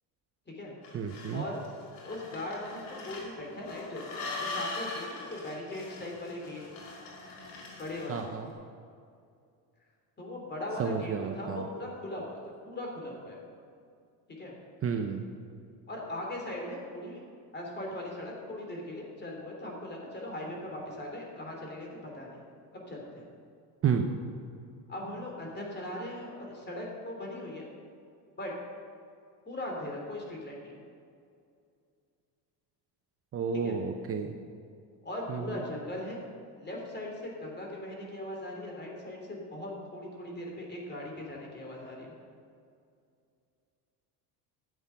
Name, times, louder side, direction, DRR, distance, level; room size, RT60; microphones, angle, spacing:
sound 1, 0.8-8.3, left 3 dB, 85° left, 2.7 m, -41 dB
voice 1, 0.9-1.4 8.1-8.5 10.8-11.7 14.8-15.2 23.8-24.1 33.3-34.3 35.3-35.6, right 6 dB, 35° right, 4 dB, 0.7 m, -31 dB
voice 2, 2.0-6.6 7.8-8.3 10.2-13.4 14.4-14.5 15.9-17.2 17.5-21.9 22.1-22.4 22.9-23.3 24.9-27.7 28.4-28.5 29.5-30.8 33.5-33.8 35.0-36.2 36.6-42.1, left 1 dB, 25° left, -1 dB, 3.0 m, -39 dB
12.5 x 7.5 x 5.7 m, 2.4 s
cardioid pair, 120°, 42 cm